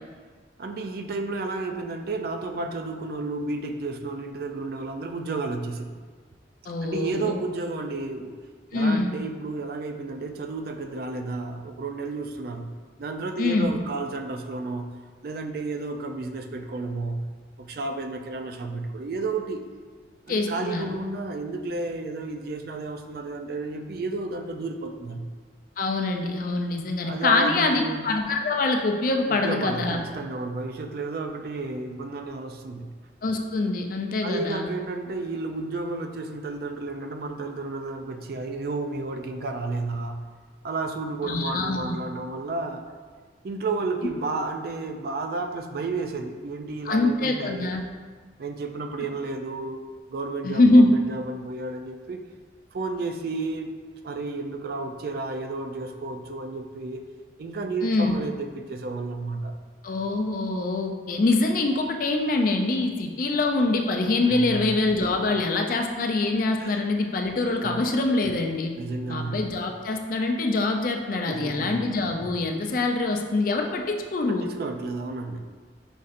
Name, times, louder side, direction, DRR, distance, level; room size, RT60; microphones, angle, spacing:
voice 1, 0.6-5.9 6.8-8.4 8.7-12.7 13.0-14.9 15.2-17.3 17.6-19.6 20.3-25.3 27.0-28.1 29.3-32.9 34.2-40.3 40.6-42.8 43.4-47.7 48.4-49.8 50.1-52.2 52.7-53.7 54.0-57.0 57.4-59.6 64.3-64.8 66.6-66.7 67.4-67.8 68.8-69.4 71.3-71.8 74.3-75.4, right 3 dB, 55° right, 6 dB, 0.4 m, -32 dB
voice 2, 6.7-7.3 8.7-9.1 13.4-13.7 20.3-20.8 25.8-30.0 33.2-34.7 41.2-42.0 46.9-47.8 50.4-50.9 57.8-58.2 59.8-68.7 69.1-74.5, left 2 dB, 50° left, 3 dB, 0.4 m, -24 dB
5.1 x 4.1 x 2.5 m, 1.5 s
head